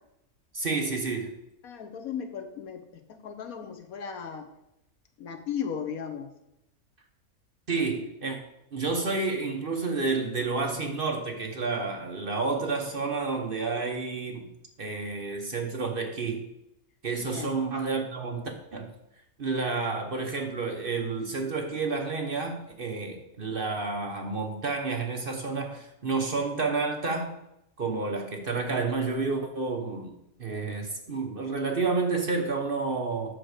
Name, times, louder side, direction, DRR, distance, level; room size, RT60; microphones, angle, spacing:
voice 1, 0.5-1.3 7.7-8.4 8.7-14.5 14.8-16.5 17.0-18.9 19.4-27.3 27.8-30.1 30.4-33.4, right 4 dB, 45° right, 3 dB, 1.0 m, -30 dB
voice 2, 1.6-4.5 5.2-6.3 17.2-17.5, left 7 dB, 70° left, 7 dB, 1.3 m, -36 dB
7.9 x 4.6 x 6.5 m, 0.84 s
omnidirectional pair, 1.6 m